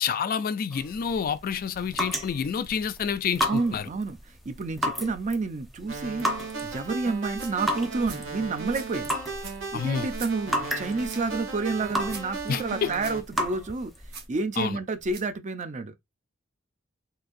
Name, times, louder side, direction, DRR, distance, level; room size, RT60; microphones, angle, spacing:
voice 1, 0.0-3.8 9.7-10.1 12.5-12.9 14.6-14.8, left 7 dB, 45° left, 0.3 m, -28 dB
sound 1, 0.7-14.3, equal, ahead, 0.7 m, -34 dB
voice 2, 3.4-6.3 6.6-9.1 9.7-13.9 14.3-15.9, right 3 dB, 40° right, 0.5 m, -30 dB
sound 2, 5.9-13.2, right 4 dB, 80° right, 1.3 m, -36 dB
sound 3, 7.2-15.4, right 4 dB, 55° right, 0.9 m, -46 dB
3.9 x 2.6 x 2.6 m
head